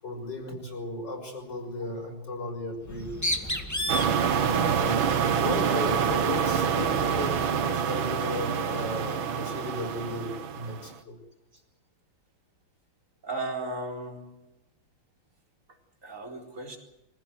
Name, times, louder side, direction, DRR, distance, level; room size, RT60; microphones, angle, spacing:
voice 1, 0.0-3.1 3.4-3.6 4.3-11.2, left 2 dB, 60° left, 6.8 m, -36 dB
Bird, 2.8-7.7, equal, 10° left, 1.8 m, -35 dB
sound 1, 3.9-10.9, right 7 dB, 75° right, 2.1 m, -26 dB
voice 2, 13.2-14.3 16.0-16.8, right 2 dB, 40° right, 4.6 m, -36 dB
25.0 x 16.0 x 9.4 m
omnidirectional pair, 2.2 m